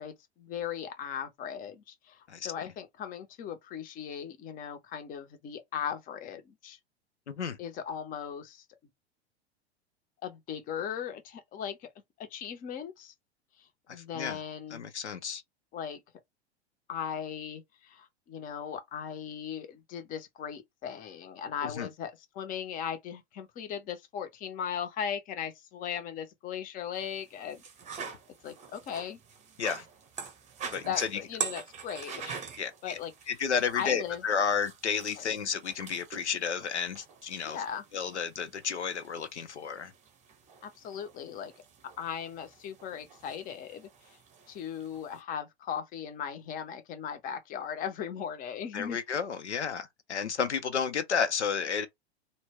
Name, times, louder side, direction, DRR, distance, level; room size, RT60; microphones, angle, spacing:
voice 1, 0.0-6.8 7.6-8.6 10.2-11.8 12.2-13.1 13.9-14.8 15.7-16.0 16.9-27.6 27.9-28.1 28.4-29.2 30.6-32.4 32.8-33.1 33.7-34.2 37.4-37.8 40.6-41.5 42.0-43.9 44.5-49.0, left 8 dB, 25° left, 0.6 m, -38 dB
voice 2, 7.3-7.6 13.9-14.4 14.7-15.4 21.6-21.9 29.6-29.9 30.7-31.2 32.6-33.0 33.3-37.6 37.9-39.9 48.7-51.9, left 6 dB, 85° left, 0.5 m, -32 dB
sound 1, 26.9-45.2, right 6 dB, 20° right, 0.7 m, -45 dB
2.2 x 2.0 x 3.4 m
figure-of-eight pair, 90°, 33 cm